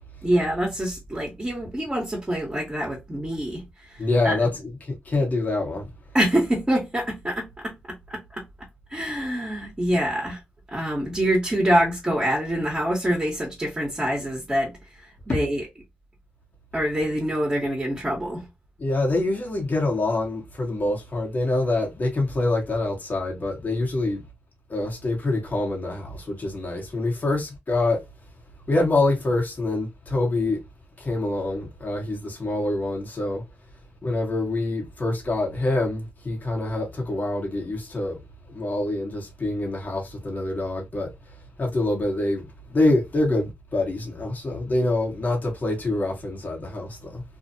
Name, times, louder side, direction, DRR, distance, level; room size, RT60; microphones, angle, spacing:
voice 1, 0.2-3.6 4.2-4.4 6.1-7.8 8.1-8.4 8.9-10.4 10.7-14.8 15.3-15.6 16.7-18.5, equal, 20° right, 1.3 m, -25 dB
voice 2, 4.0-5.9 15.3-15.4 18.8-24.2 24.7-28.0 28.7-30.6 31.0-33.4 34.0-38.2 38.5-41.1 41.6-47.2, left 2 dB, 45° left, 1.3 m, -25 dB
2.7 x 2.4 x 2.6 m
cardioid pair, 60°, 4 cm